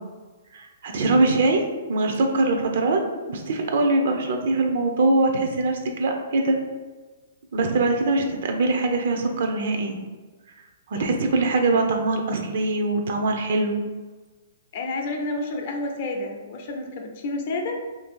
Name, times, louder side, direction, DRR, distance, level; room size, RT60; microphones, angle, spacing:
voice 1, 0.5-1.6 1.9-3.0 3.3-6.6 7.5-10.0 10.9-13.8, right 2 dB, 65° right, 3 dB, 0.5 m, -22 dB
voice 2, 14.7-17.8, left 2 dB, 50° left, 2 dB, 0.6 m, -29 dB
2.7 x 2.5 x 3.6 m, 1.3 s
hypercardioid pair, 145°, 0 cm